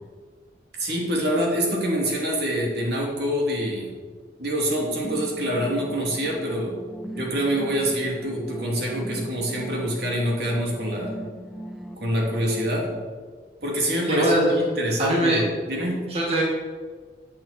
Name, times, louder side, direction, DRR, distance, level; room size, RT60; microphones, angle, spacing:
voice 1, 0.8-3.9 4.4-6.8 7.1-11.1 12.0-12.9 13.6-16.1, equal, 60° right, -2 dB, 3.0 m, -26 dB
sound 1, 5.0-13.0, right 1 dB, ahead, 0.8 m, -39 dB
voice 2, 14.0-14.5 15.0-15.4 16.1-16.4, right 1 dB, 35° right, -4 dB, 2.2 m, -21 dB
16.0 x 8.7 x 4.4 m, 1.5 s
head